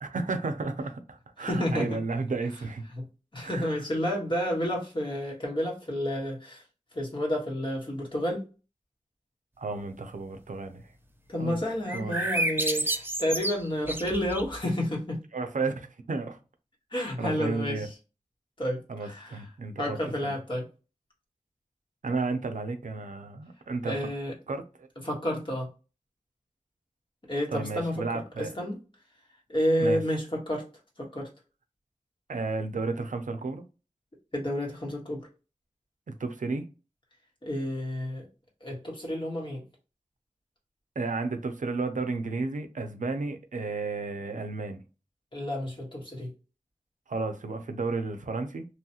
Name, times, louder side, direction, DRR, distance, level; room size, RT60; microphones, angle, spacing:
voice 1, 0.0-2.9 3.4-3.8 9.6-10.8 11.4-11.6 11.9-12.3 15.3-16.4 17.2-17.9 18.9-20.0 20.2-20.3 22.0-24.0 24.5-24.9 27.5-28.5 29.8-30.0 32.3-33.6 36.1-36.6 41.0-44.8 47.1-48.7, right 3 dB, 85° right, 0.5 m, -32 dB
voice 2, 1.4-2.0 3.0-3.1 3.3-6.6 6.9-8.4 11.3-15.2 16.9-17.9 18.6-19.4 19.8-20.6 23.8-24.3 25.0-25.7 27.2-28.8 29.5-30.6 31.0-31.3 34.3-35.3 37.4-38.3 38.6-39.6 45.3-46.3, equal, 40° left, 1.3 m, -30 dB
sound 1, 11.9-14.6, right 1 dB, 15° right, 0.4 m, -30 dB
3.0 x 2.3 x 2.8 m
wide cardioid pair, 60°, 13 cm